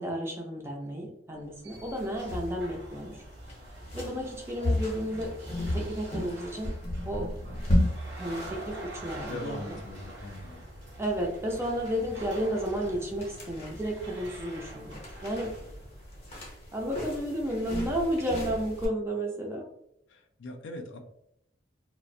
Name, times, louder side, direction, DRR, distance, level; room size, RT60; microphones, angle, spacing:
voice 1, 0.0-3.2 3.9-5.3 5.7-6.7 7.1-7.3 8.2-9.8 11.0-15.5 16.7-19.7, equal, 15° right, 0 dB, 0.4 m, -32 dB
sound 1, 1.3-16.5, right 1 dB, 65° right, 0.8 m, -46 dB
sound 2, 1.7-18.9, left 1 dB, 30° left, 0.7 m, -35 dB
voice 2, 9.2-10.7 20.1-21.0, left 2 dB, 70° left, 4 dB, 0.4 m, -41 dB
2.4 x 2.0 x 2.5 m, 0.75 s
head